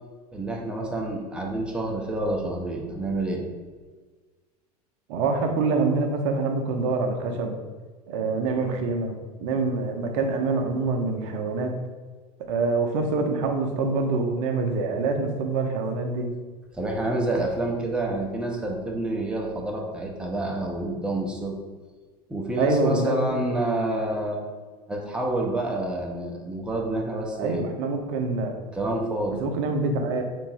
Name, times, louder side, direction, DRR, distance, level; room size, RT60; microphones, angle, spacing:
voice 1, 0.3-3.4 16.7-21.6 22.3-24.4 24.9-27.6 28.7-29.4, right 1 dB, 5° right, -1 dB, 0.6 m, -28 dB
voice 2, 5.1-7.6 8.1-11.8 12.5-16.3 22.6-23.4 27.4-28.6 29.4-30.2, right 3 dB, 50° right, 4 dB, 0.6 m, -25 dB
3.4 x 2.5 x 3.2 m, 1.4 s
figure-of-eight pair, 80°, 21 cm